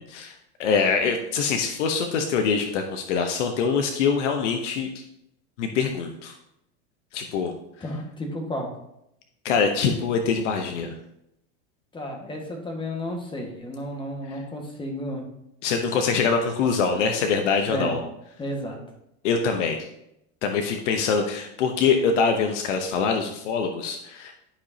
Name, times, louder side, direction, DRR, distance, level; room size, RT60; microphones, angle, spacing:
voice 1, 0.1-5.0 5.6-6.3 7.1-7.5 9.4-10.9 14.3-14.4 15.6-18.0 19.2-19.9 20.4-24.3, left 5 dB, 85° left, 5 dB, 0.9 m, -24 dB
voice 2, 7.8-8.7 11.9-15.2 17.7-18.0 18.4-18.8, left 1 dB, 15° left, 2 dB, 1.5 m, -32 dB
11.5 x 5.1 x 2.8 m, 0.81 s
supercardioid pair, 125°, 35 cm